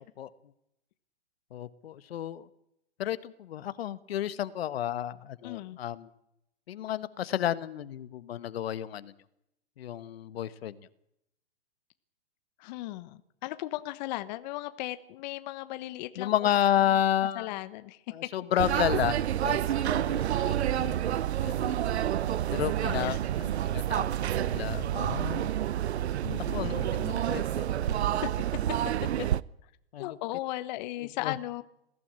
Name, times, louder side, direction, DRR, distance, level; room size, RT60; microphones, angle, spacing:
voice 1, 1.5-2.5 3.0-6.1 6.7-9.1 9.8-10.7 16.2-17.5 18.1-21.1 21.4-21.7 22.5-23.2 23.7-24.2 24.4-25.5 26.5-26.8 27.1-27.9 29.9-30.2 31.2-31.3, left 11 dB, 65° left, 15 dB, 1.4 m, -31 dB
voice 2, 5.4-5.8 12.6-16.3 17.4-18.3 22.8-23.7 26.2-27.2 28.2-28.3 28.7-28.8 29.2-29.3 30.0-31.6, left 17 dB, 40° left, 12 dB, 1.2 m, -37 dB
sound 1, 18.6-29.4, right 11 dB, 80° right, 0.8 m, -29 dB
21.5 x 15.5 x 8.8 m, 0.78 s
hypercardioid pair, 140°, 33 cm